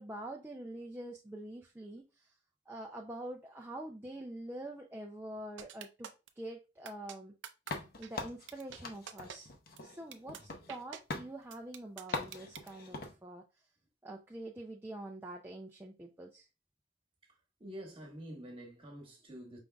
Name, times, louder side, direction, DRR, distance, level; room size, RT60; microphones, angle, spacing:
voice 1, 0.0-2.3 2.7-6.1 6.4-7.3 8.0-9.5 9.8-13.4 14.0-16.5, right 1 dB, 10° right, 0.4 m, -45 dB
sound 1, 5.6-6.3 6.8-7.1 7.4-7.7 8.0-8.1 8.5-8.8 9.1-9.4 9.8-9.9 10.1-10.4 10.7-11.0 11.5-12.7, right 8 dB, 75° right, 0.5 m, -46 dB
sound 2, 7.7-10.8 11.1-11.3 12.1-13.1, left 3 dB, 50° left, 0.7 m, -42 dB
voice 2, 17.3-19.6, equal, 30° right, 1.2 m, -48 dB
5.1 x 3.6 x 2.2 m
head